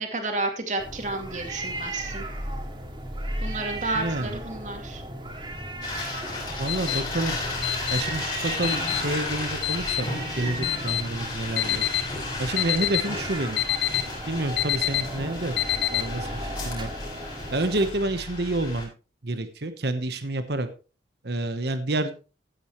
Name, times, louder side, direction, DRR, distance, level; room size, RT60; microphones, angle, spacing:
voice 1, 0.0-2.3 3.4-5.0, right 2 dB, 45° right, 4 dB, 2.4 m, -31 dB
sound 1, 0.8-17.9, right 1 dB, 25° right, 2.4 m, -36 dB
voice 2, 3.9-4.3 6.6-7.4 7.6-10.1 10.4-11.9 12.4-13.6 14.3-15.5 15.9-16.9 17.5-18.9 19.2-20.7 21.2-22.1, right 2 dB, 70° right, 10 dB, 1.1 m, -29 dB
sound 2, 5.8-18.9, left 2 dB, 25° left, 6.0 m, -34 dB
sound 3, 6.7-16.4, left 13 dB, 65° left, 0.8 m, -28 dB
15.0 x 9.1 x 3.1 m, 0.34 s
head